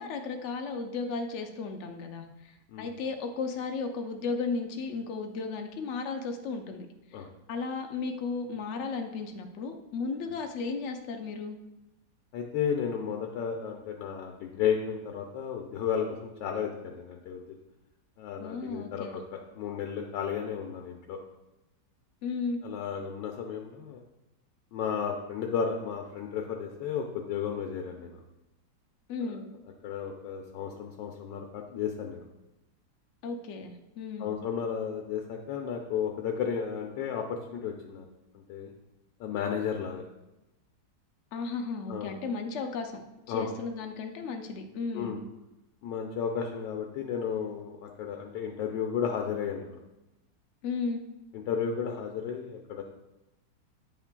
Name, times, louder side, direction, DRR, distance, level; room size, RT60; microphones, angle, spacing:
voice 1, 0.0-2.3 2.8-6.9 7.5-11.6 18.4-19.2 22.2-22.6 29.1-29.4 33.2-34.3 41.3-43.0 43.3-45.2 50.6-51.0, left 4 dB, 65° left, 4 dB, 0.7 m, -34 dB
voice 2, 12.3-17.4 18.2-21.2 22.6-24.0 24.7-28.2 29.2-29.4 29.8-32.2 34.2-38.1 38.5-38.7 39.2-40.0 41.9-42.1 43.3-43.5 44.9-45.2 45.8-49.8 51.3-52.8, left 7 dB, 85° left, 2 dB, 1.3 m, -33 dB
9.2 x 5.8 x 2.2 m, 0.97 s
omnidirectional pair, 1.9 m